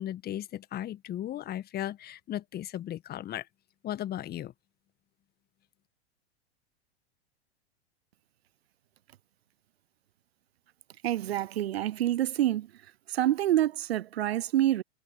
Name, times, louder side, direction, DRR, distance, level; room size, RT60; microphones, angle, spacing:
voice 1, 0.0-3.5 3.8-4.5, left 12 dB, 30° left, 1.7 m, -36 dB
voice 2, 11.0-12.7 13.1-14.8, right 13 dB, 65° right, 0.7 m, -27 dB
figure-of-eight pair, 95°, 33 cm